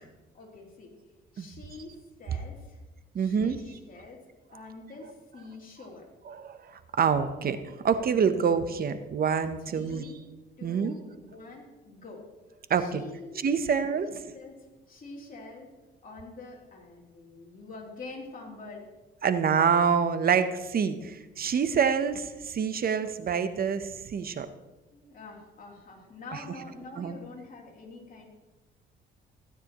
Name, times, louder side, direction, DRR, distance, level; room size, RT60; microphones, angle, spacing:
voice 1, 0.3-1.0 1.3-2.8 3.2-6.1 9.7-10.2 10.6-12.3 12.8-13.4 14.1-15.8 16.0-18.9 24.9-28.3, left 3 dB, 45° left, -2 dB, 3.1 m, -46 dB
voice 2, 3.1-3.6 6.3-10.1 10.6-11.0 12.7-13.0 13.4-14.1 19.2-24.5 26.3-26.4 27.0-27.1, right 6 dB, 50° right, 10 dB, 0.8 m, -26 dB
16.0 x 9.5 x 3.0 m, 1.1 s
cardioid pair, 90°, 20 cm